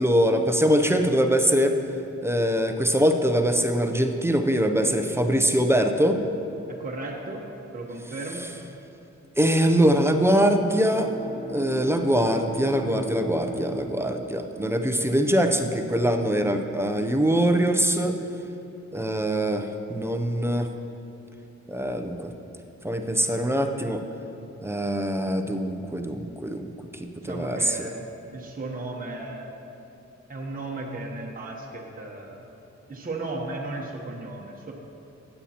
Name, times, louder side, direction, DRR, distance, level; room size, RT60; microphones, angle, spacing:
voice 1, 0.0-1.7 2.2-6.2 9.4-11.1 11.5-18.1 18.9-20.7 21.7-22.3 22.8-24.0 24.6-26.7 27.2-27.8, equal, 10° right, 4 dB, 0.5 m, -23 dB
voice 2, 6.7-7.4 7.7-8.4 27.2-29.5 30.3-32.4 32.9-34.7, right 2 dB, 30° right, -2 dB, 0.9 m, -35 dB
Bowed string instrument, 10.4-15.2, right 3 dB, 35° left, 2.2 m, -38 dB
15.5 x 9.8 x 2.9 m, 2.8 s
wide cardioid pair, 170°, 29 cm